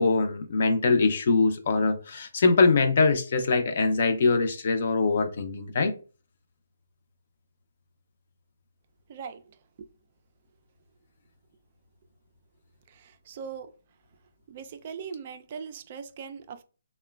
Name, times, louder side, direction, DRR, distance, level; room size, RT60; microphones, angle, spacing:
voice 1, 0.0-5.9, left 4 dB, 50° left, 0.5 m, -23 dB
voice 2, 9.1-9.4 12.9-13.7 14.5-16.6, right 6 dB, 35° right, 0.3 m, -40 dB
2.9 x 2.1 x 2.3 m
hypercardioid pair, 155°, 0 cm